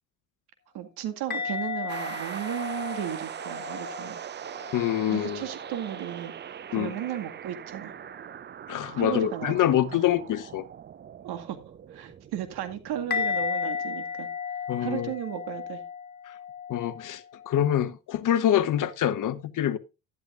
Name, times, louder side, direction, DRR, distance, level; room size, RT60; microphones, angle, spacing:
voice 1, 0.7-4.2 5.1-6.3 6.7-7.9 8.9-10.0 11.2-11.6 11.9-14.3 14.8-15.8, right 10 dB, 60° right, 2.1 m, -35 dB
sound 1, 1.3-5.3 5.6-6.2 13.1-17.8, left 6 dB, 25° left, 2.7 m, -34 dB
sound 2, 1.9-13.5, right 9 dB, 25° right, 0.5 m, -41 dB
voice 2, 4.7-5.5 6.7-6.9 8.7-10.6 14.7-15.1 16.3-16.4 16.7-19.8, left 11 dB, 45° left, 1.0 m, -26 dB
12.0 x 11.0 x 2.5 m
hypercardioid pair, 65°, 43 cm